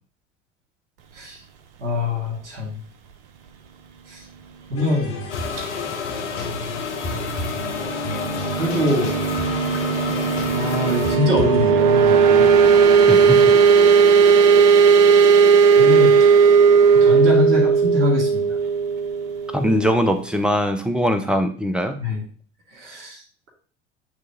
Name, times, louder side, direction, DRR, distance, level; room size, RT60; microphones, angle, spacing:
voice 1, 1.8-2.8 4.1-4.2 4.7-5.1 5.6-5.9 8.5-9.2 10.1-12.5 15.8-16.4 16.9-18.6 22.0-22.2 22.7-23.5, left 2 dB, 70° right, -2 dB, 2.1 m, -24 dB
sound 1, 4.8-11.7, left 2 dB, 40° left, 2.0 m, -32 dB
sound 2, 5.3-11.2, left 6 dB, 75° left, 0.9 m, -31 dB
sound 3, 7.5-20.1, right 6 dB, 55° right, 0.9 m, -16 dB
voice 2, 13.1-13.6 19.5-22.0, equal, 5° right, 7 dB, 0.7 m, -21 dB
8.4 x 3.1 x 3.6 m, 0.43 s
figure-of-eight pair, 80°, 35 cm